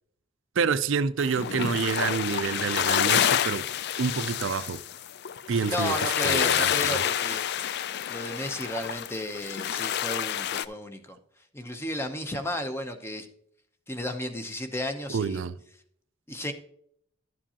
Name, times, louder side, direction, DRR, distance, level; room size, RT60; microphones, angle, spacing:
voice 1, 0.6-3.7 4.0-4.8 5.5-7.0 15.1-15.5, right 5 dB, 65° right, 0.4 m, -28 dB
sound 1, 1.2-10.6, left 9 dB, 55° left, 0.3 m, -28 dB
voice 2, 5.7-7.4 8.1-11.2 11.5-13.3 13.9-15.4 16.3-16.5, left 1 dB, 10° left, 0.7 m, -33 dB
11.5 x 7.4 x 2.9 m
head